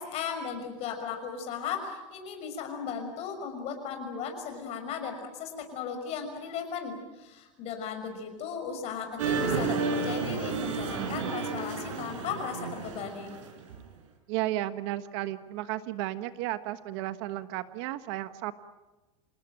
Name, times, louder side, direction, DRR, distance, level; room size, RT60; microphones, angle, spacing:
voice 1, 0.0-13.3, left 6 dB, 40° left, 6 dB, 6.1 m, -36 dB
sound 1, 9.2-13.8, right 4 dB, 85° right, 5.5 m, -31 dB
voice 2, 14.3-18.5, right 15 dB, 60° right, 11 dB, 1.4 m, -33 dB
28.0 x 18.0 x 9.1 m, 1.1 s
supercardioid pair, 140°, 16 cm